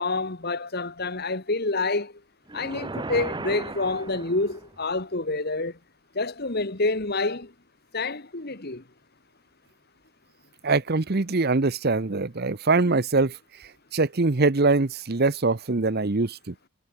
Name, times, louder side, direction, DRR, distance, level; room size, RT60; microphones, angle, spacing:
voice 1, 0.0-2.1 2.5-5.8 6.1-7.5 7.9-8.8, left 3 dB, 45° left, 1.8 m, -28 dB
sound 1, 2.5-4.8, right 2 dB, 20° right, 0.7 m, -36 dB
voice 2, 10.6-13.4 13.9-16.5, right 3 dB, 45° right, 0.9 m, -23 dB
head